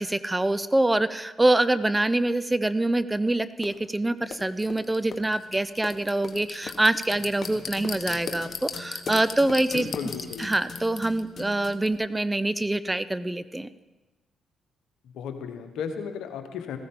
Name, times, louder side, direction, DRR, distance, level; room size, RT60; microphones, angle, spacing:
voice 1, 0.0-9.9 10.4-13.7, right 2 dB, 15° right, 14 dB, 0.6 m, -25 dB
sound 1, 3.6-3.7 4.3-11.9, left 5 dB, 55° left, 1.3 m, -37 dB
voice 2, 9.7-10.5 15.0-16.8, left 7 dB, 75° left, 7 dB, 1.2 m, -35 dB
15.0 x 14.5 x 3.8 m, 1.1 s
hypercardioid pair, 50°, 0 cm